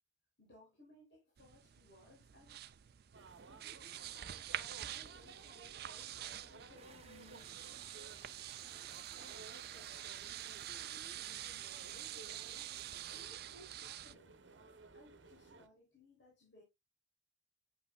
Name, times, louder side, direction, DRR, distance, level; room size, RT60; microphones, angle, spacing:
voice 1, 0.4-2.6 4.1-8.2 9.1-12.7 13.1-14.3 14.9-16.6, left 1 dB, 70° left, 3.8 m, -63 dB
sound 1, 1.4-14.1, right 12 dB, 55° right, 0.4 m, -47 dB
sound 2, 3.1-15.7, right 3 dB, 80° right, 0.9 m, -58 dB
sound 3, 6.8-13.2, right 6 dB, 35° right, 0.8 m, -60 dB
8.0 x 5.5 x 2.3 m
head